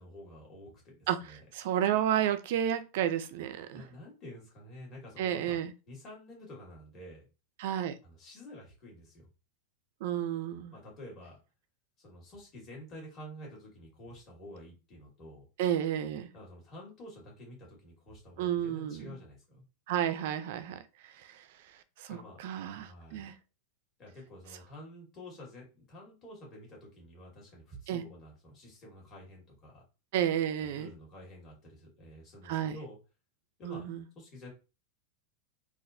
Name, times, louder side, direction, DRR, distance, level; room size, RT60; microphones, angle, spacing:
voice 1, 0.0-1.4 3.7-5.6 5.9-7.3 8.0-9.3 10.7-11.4 12.0-15.5 16.3-19.6 22.1-22.4 22.8-23.3 24.0-29.8 30.6-33.0 33.6-33.8 34.2-34.5, left 1 dB, 25° left, 1.8 m, -49 dB
voice 2, 1.5-3.8 5.2-5.7 7.6-8.0 10.0-10.7 15.6-16.3 18.4-19.2 19.9-21.4 22.0-23.3 27.9-28.0 30.1-30.9 32.5-32.8 33.6-34.0, right 10 dB, 60° right, 0.4 m, -31 dB
4.1 x 2.5 x 2.6 m
supercardioid pair, 160°, 0 cm